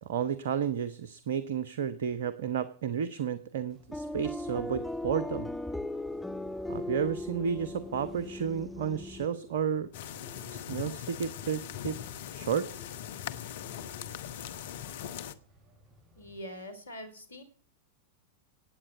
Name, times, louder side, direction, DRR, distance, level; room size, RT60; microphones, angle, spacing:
voice 1, 0.0-5.5 6.7-9.9 10.5-12.0 12.3-12.7, right 7 dB, 60° right, 15 dB, 1.0 m, -32 dB
Bird, 3.7-16.4, equal, 25° right, 6.4 m, -56 dB
sound 1, 3.9-9.3, left 2 dB, 5° left, 0.7 m, -38 dB
sound 2, 9.9-15.3, left 10 dB, 55° left, 1.1 m, -40 dB
voice 2, 16.2-17.4, equal, 75° left, 10 dB, 3.7 m, -43 dB
17.5 x 8.8 x 8.2 m, 0.41 s
figure-of-eight pair, 90°, 0 cm